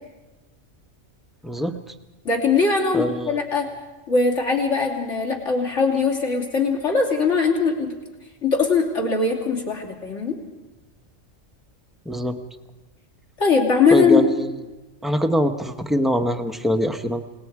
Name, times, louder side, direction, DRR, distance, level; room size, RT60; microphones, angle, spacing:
voice 1, 1.4-1.7 2.9-3.4 12.1-12.4 13.9-14.5 15.0-17.2, equal, ahead, 6 dB, 0.8 m, -23 dB
voice 2, 2.2-3.7 4.1-7.9 8.4-10.4 13.4-14.3, left 4 dB, 65° left, 0 dB, 3.2 m, -20 dB
29.0 x 19.0 x 4.8 m, 1.2 s
omnidirectional pair, 1.3 m